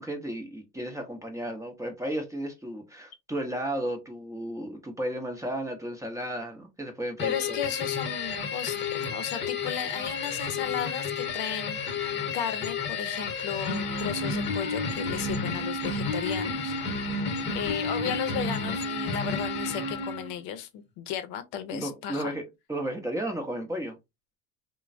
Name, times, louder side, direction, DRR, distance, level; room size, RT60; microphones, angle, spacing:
voice 1, 0.0-7.6 21.7-22.4 22.7-24.0, right 1 dB, 10° right, 0.6 m, -33 dB
voice 2, 7.2-22.3, left 9 dB, 75° left, 0.6 m, -35 dB
sound 1, 7.2-20.4, left 3 dB, 25° left, 0.9 m, -31 dB
3.1 x 2.1 x 2.5 m
supercardioid pair, 110°, 40 cm